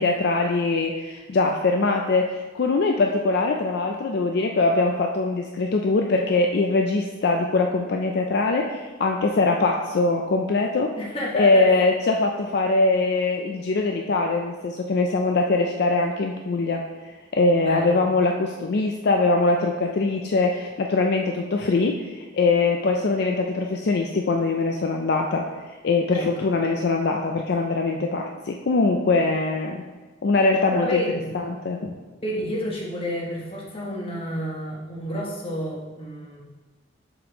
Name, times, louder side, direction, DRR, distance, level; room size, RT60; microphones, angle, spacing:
voice 1, 0.0-10.9 11.3-16.8 17.4-25.4 25.8-29.8 30.2-31.0 31.3-31.9, left 3 dB, 55° left, 2 dB, 0.4 m, -22 dB
voice 2, 11.0-11.9 17.6-18.0 26.1-26.3 30.8-31.4 32.2-36.4, left 1 dB, 30° left, -3 dB, 1.2 m, -30 dB
7.0 x 5.0 x 3.0 m, 1.3 s
head